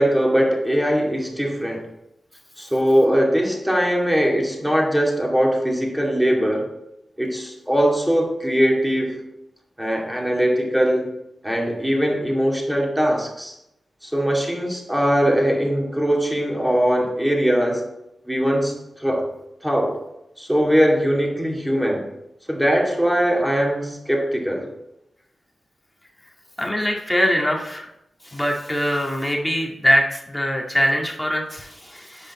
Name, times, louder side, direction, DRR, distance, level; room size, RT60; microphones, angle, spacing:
voice 1, 0.0-1.9 2.6-6.7 7.2-9.2 9.8-11.1 11.4-13.5 14.0-17.9 18.3-19.3 19.6-20.0 20.4-22.1 22.5-24.7, equal, 5° right, -1 dB, 2.4 m, -21 dB
voice 2, 26.6-27.9 28.3-32.3, equal, 10° left, 0 dB, 2.1 m, -22 dB
8.5 x 5.0 x 4.2 m, 0.84 s
cardioid pair, 50°, 0 cm